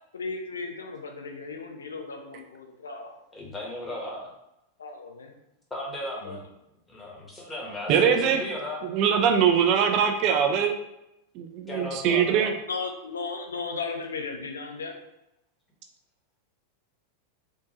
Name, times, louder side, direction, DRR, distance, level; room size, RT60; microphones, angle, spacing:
voice 1, 0.1-3.2 4.8-5.3 6.2-6.4 12.7-14.9, left 4 dB, 70° left, 3 dB, 0.4 m, -35 dB
voice 2, 3.3-4.3 5.7-6.5 6.9-8.8 11.7-12.5, left 1 dB, 15° left, -3 dB, 1.1 m, -35 dB
voice 3, 7.9-8.4 8.9-10.7 11.4-12.5, right 7 dB, 40° right, 5 dB, 0.3 m, -22 dB
3.5 x 2.6 x 2.8 m, 0.87 s
figure-of-eight pair, 90°, 0 cm